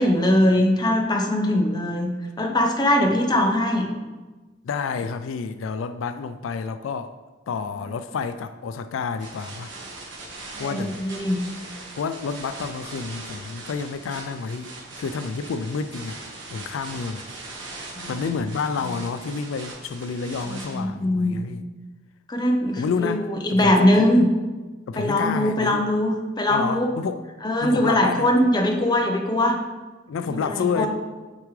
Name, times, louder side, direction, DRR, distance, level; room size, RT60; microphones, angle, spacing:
voice 1, 0.0-2.1 2.4-3.9 10.5-11.4 18.0-18.2 18.9-19.0 20.4-21.4 22.3-23.2 23.4-24.3 25.0-26.9 27.4-29.6 30.3-30.9, left 1 dB, 20° left, 1 dB, 0.7 m, -21 dB
voice 2, 4.6-7.1 7.5-9.7 10.6-11.0 12.0-16.2 16.5-17.3 18.1-21.6 22.8-24.1 24.9-25.8 26.5-27.2 27.6-28.3 30.1-30.9, left 5 dB, 90° left, 10 dB, 0.4 m, -29 dB
sound 1, 9.2-20.8, right 2 dB, 70° right, 1.4 m, -40 dB
8.4 x 4.7 x 3.2 m, 1.3 s
head